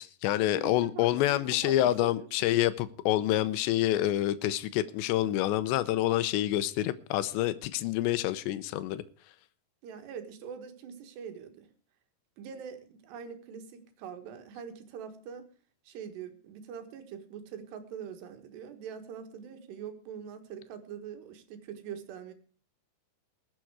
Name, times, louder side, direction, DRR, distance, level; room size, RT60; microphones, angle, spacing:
voice 1, 0.0-9.0, left 14 dB, 90° left, 3.0 m, -27 dB
voice 2, 0.5-2.3 9.8-11.7 12.4-15.5 15.9-22.3, right 7 dB, 75° right, 3.7 m, -43 dB
21.0 x 7.7 x 4.7 m
omnidirectional pair, 4.9 m